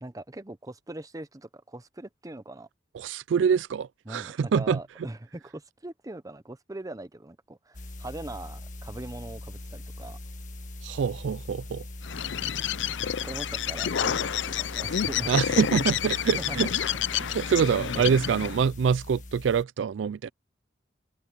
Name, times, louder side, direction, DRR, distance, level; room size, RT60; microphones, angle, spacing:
voice 1, 0.0-2.7 4.1-10.2 13.2-16.7 17.4-17.6 17.9-18.5, right 1 dB, 20° right, 0.9 m, -41 dB
voice 2, 2.9-4.8 10.8-11.8 15.3-16.7 17.2-20.3, right 6 dB, 80° right, 0.4 m, -25 dB
sound 1, 7.7-19.6, left 1 dB, 45° left, 1.5 m, -41 dB
Bird, 12.0-18.7, left 9 dB, 75° left, 0.5 m, -29 dB
head